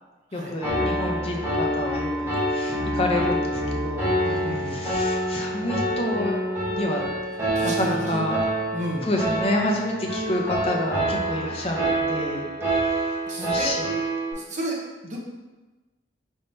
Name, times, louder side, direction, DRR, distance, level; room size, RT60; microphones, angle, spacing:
voice 1, 0.3-6.3 6.7-7.1 7.6-8.4 9.0-13.1 13.4-13.9, left 1 dB, 35° left, 1 dB, 0.5 m, -29 dB
Piano, 0.6-14.3, right 1 dB, 15° right, 1.0 m, -27 dB
voice 2, 4.2-4.8 7.5-8.2 8.7-9.1 13.3-13.8 14.3-15.2, right 1 dB, 40° right, -3 dB, 0.7 m, -32 dB
4.3 x 3.5 x 2.7 m, 1.2 s
head